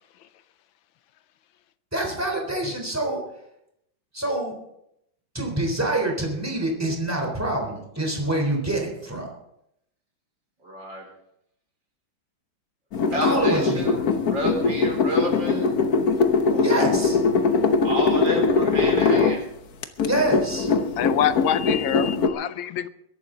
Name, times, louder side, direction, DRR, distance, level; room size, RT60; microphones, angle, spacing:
voice 1, 1.9-3.2 4.1-4.5 5.3-9.3 13.2-13.9 16.6-17.2 20.1-20.7, right 1 dB, 5° right, 1 dB, 3.7 m, -26 dB
voice 2, 10.6-11.0 13.1-15.7 16.5-16.7 17.8-19.4, equal, 70° right, 1 dB, 5.0 m, -30 dB
sound 1, 12.9-19.4 19.8-22.3, left 4 dB, 55° left, 1.4 m, -22 dB
voice 3, 21.0-22.9, left 10 dB, 85° left, 13 dB, 1.5 m, -25 dB
22.0 x 11.5 x 3.9 m, 0.78 s
omnidirectional pair, 2.1 m